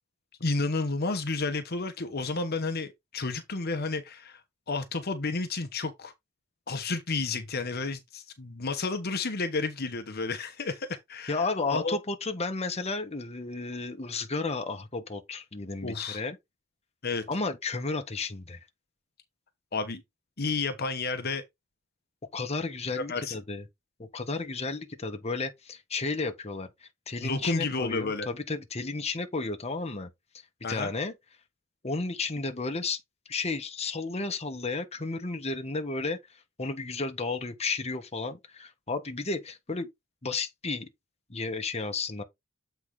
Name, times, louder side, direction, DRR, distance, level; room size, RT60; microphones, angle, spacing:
voice 1, 0.4-4.4 4.7-6.1 6.7-12.0 15.8-16.2 17.0-17.3 19.7-20.0 20.4-21.4 22.9-23.4 27.2-28.3 30.6-30.9, left 3 dB, 50° left, 1.1 m, -31 dB
voice 2, 11.3-16.4 17.3-18.6 22.3-23.6 24.0-30.1 30.7-31.1 31.8-33.0 33.3-36.2 36.6-39.9 40.2-40.9 41.3-42.2, left 3 dB, 30° left, 1.2 m, -33 dB
8.1 x 4.6 x 3.7 m
head